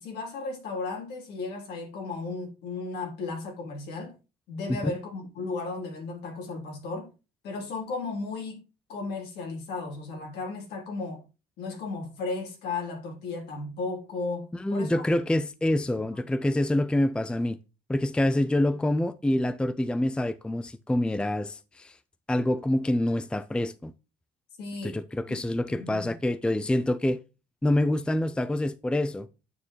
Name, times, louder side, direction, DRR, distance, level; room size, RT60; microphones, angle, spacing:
voice 1, 0.0-4.1 4.5-7.1 7.4-8.6 8.9-11.2 11.6-15.0 24.6-25.0 25.7-26.1, left 3 dB, 75° left, 3.5 m, -35 dB
voice 2, 14.5-17.6 17.9-22.0 22.3-23.9 24.8-27.2 27.6-29.3, left 1 dB, 5° left, 0.5 m, -26 dB
9.4 x 6.4 x 3.1 m
cardioid pair, 110°, 17 cm